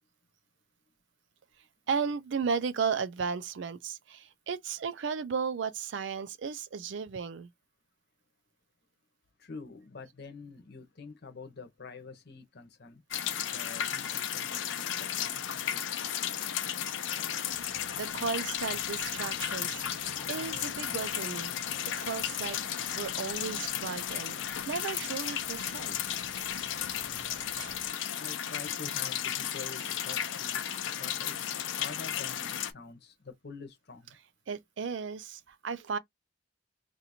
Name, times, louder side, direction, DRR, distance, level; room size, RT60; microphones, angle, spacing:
voice 1, 1.9-7.5 18.0-22.6 22.9-24.4 24.7-26.0 26.5-26.7 27.6-27.8 34.5-36.0, right 6 dB, 70° right, 0.4 m, -35 dB
voice 2, 9.4-13.0 13.5-16.4 28.1-34.2, left 4 dB, 60° left, 0.9 m, -47 dB
sound 1, 13.1-32.7, left 9 dB, 85° left, 0.5 m, -34 dB
sound 2, 17.5-27.9, right 1 dB, 25° right, 0.8 m, -58 dB
2.7 x 2.5 x 4.2 m
head